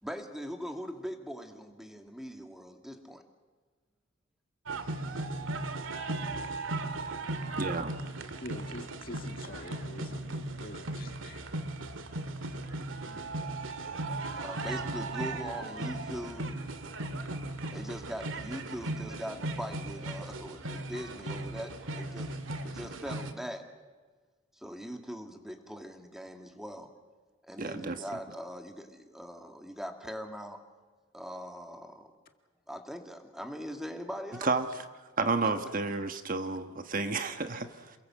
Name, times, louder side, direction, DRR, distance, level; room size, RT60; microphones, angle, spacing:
voice 1, 0.0-3.2 14.4-16.5 17.7-22.3 22.6-23.6 24.6-26.9 27.4-30.6 31.1-32.1 32.7-34.5 35.4-35.6, equal, ahead, 5 dB, 2.2 m, -41 dB
sound 1, 4.7-23.3, right 2 dB, 75° right, 2.0 m, -37 dB
voice 2, 7.6-7.9 27.6-28.0 34.4-34.8 35.2-37.9, right 3 dB, 45° right, 8 dB, 1.3 m, -31 dB
voice 3, 8.4-11.4 13.0-13.3, left 1 dB, 45° left, 6 dB, 2.0 m, -45 dB
28.0 x 22.5 x 7.6 m, 1.4 s
head